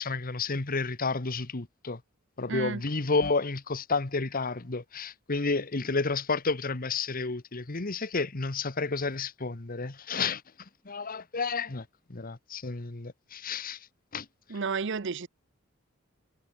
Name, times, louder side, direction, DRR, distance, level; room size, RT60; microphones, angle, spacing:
voice 1, 0.0-2.0 2.4-10.4 10.8-11.8 12.1-13.8 14.1-14.3, left 4 dB, 45° left, 1.3 m, -31 dB
voice 2, 2.5-2.8 14.5-15.3, right 5 dB, 65° right, 0.7 m, -31 dB
head